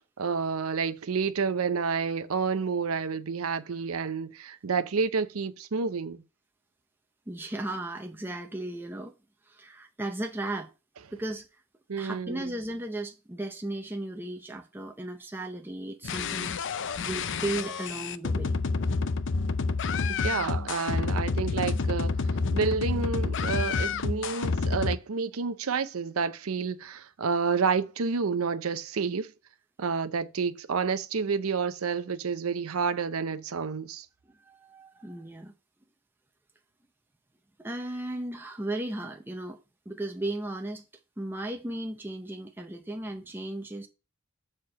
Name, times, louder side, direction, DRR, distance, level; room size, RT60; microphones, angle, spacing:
voice 1, 0.2-6.2 11.9-12.5 20.2-22.1 22.5-29.3 29.8-34.1, right 5 dB, 80° right, 0.6 m, -29 dB
voice 2, 7.3-9.1 9.5-10.7 11.1-11.5 12.0-16.6 17.0-18.5 34.3-35.5 37.6-39.6 39.9-40.8 41.2-43.9, right 1 dB, 10° right, 0.7 m, -35 dB
sound 1, 16.0-25.0, left 4 dB, 60° left, 0.5 m, -29 dB
6.7 x 4.4 x 6.3 m
head